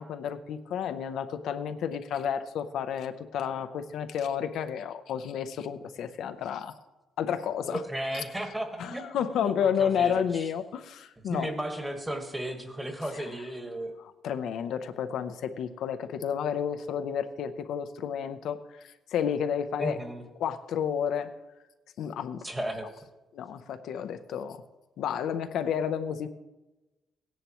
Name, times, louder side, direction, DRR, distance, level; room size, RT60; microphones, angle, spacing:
voice 1, 0.0-6.7 7.2-7.8 8.8-11.5 14.2-20.0 20.4-21.3 22.0-22.4 23.3-24.6 25.0-26.3, left 8 dB, 75° left, 8 dB, 0.6 m, -31 dB
voice 2, 7.7-9.1 9.4-10.5 11.2-13.9 19.8-20.2 22.4-22.9, right 1 dB, 10° right, 5 dB, 1.4 m, -35 dB
16.5 x 10.0 x 3.0 m, 1.1 s
cardioid pair, 130°, 0 cm